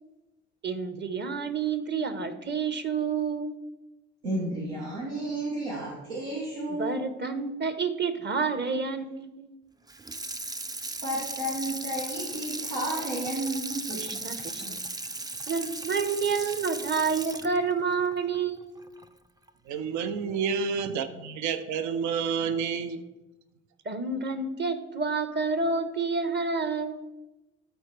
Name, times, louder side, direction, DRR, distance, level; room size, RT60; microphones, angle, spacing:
voice 1, 0.6-3.6 6.7-9.5 13.9-14.6 15.5-18.7 23.8-27.0, right 5 dB, 35° right, 10 dB, 1.1 m, -29 dB
voice 2, 4.2-7.0 11.0-14.8, right 1 dB, 85° right, -4 dB, 1.6 m, -32 dB
Water tap faucet / Sink (filling or washing), 9.9-19.1 19.5-19.6, right 2 dB, 10° right, 0.5 m, -37 dB
voice 3, 19.7-23.0, right 6 dB, 60° right, 11 dB, 0.7 m, -29 dB
12.5 x 4.5 x 3.3 m, 1.0 s
hypercardioid pair, 55°, 32 cm